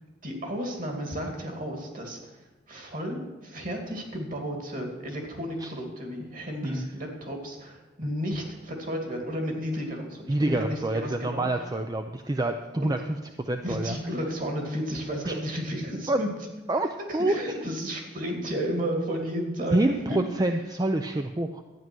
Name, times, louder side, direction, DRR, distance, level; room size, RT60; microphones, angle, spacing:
voice 1, 0.2-2.4 2.7-11.5 12.8-12.9 13.6-16.3 17.1-20.3, equal, 45° right, 2 dB, 2.4 m, -33 dB
voice 2, 10.3-13.0 13.4-14.0 15.3-15.4 16.1-16.2 16.7-17.4 19.7-21.6, right 2 dB, 20° right, 6 dB, 0.5 m, -27 dB
12.0 x 9.4 x 6.1 m, 1.2 s
head